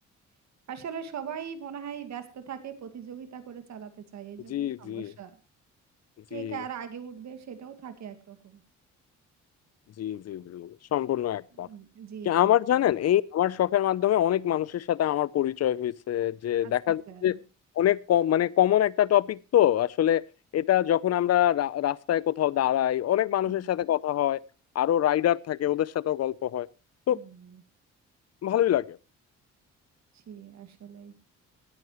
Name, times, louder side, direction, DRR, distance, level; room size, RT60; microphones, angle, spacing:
voice 1, 0.7-5.4 6.3-8.6 11.5-12.9 16.6-17.4 23.5-23.7 27.1-27.6 30.1-31.1, right 8 dB, 65° right, 2.2 m, -41 dB
voice 2, 4.5-5.1 6.3-6.6 10.0-11.7 12.2-17.4 17.8-20.2 20.5-24.4 24.7-26.7 27.1-27.2 28.4-29.0, left 12 dB, 55° left, 0.7 m, -25 dB
17.5 x 10.5 x 3.1 m
cardioid pair, 90°, 30 cm